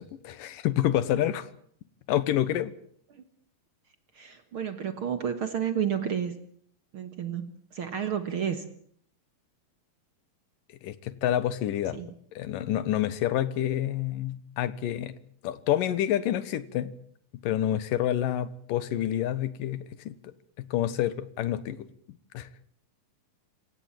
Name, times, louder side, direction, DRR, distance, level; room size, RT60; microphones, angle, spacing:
voice 1, 0.0-1.5 2.1-2.7 10.8-12.0 12.3-15.2 15.4-16.9 17.4-21.9 22.3-22.5, left 12 dB, 80° left, 16 dB, 2.8 m, -28 dB
voice 2, 4.1-6.3 6.9-8.7 11.9-12.1, right 8 dB, 50° right, 10 dB, 1.8 m, -31 dB
27.0 x 16.0 x 8.9 m, 0.62 s
omnidirectional pair, 3.9 m